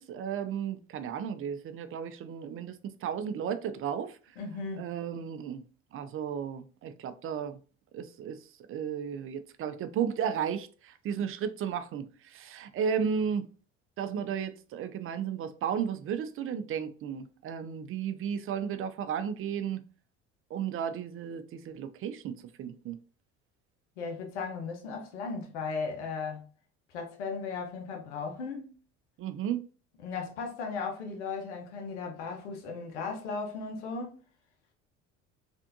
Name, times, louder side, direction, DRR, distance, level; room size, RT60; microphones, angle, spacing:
voice 1, 0.0-4.2 4.8-5.6 5.9-7.6 7.9-8.4 8.7-13.5 14.0-19.8 20.5-23.0 29.2-29.6, right 8 dB, 40° right, 0.4 m, -34 dB
voice 2, 4.4-4.9 24.0-26.5 26.9-28.7 30.0-34.1, left 4 dB, 85° left, 0.8 m, -36 dB
3.4 x 2.5 x 2.6 m
hypercardioid pair, 70°, 34 cm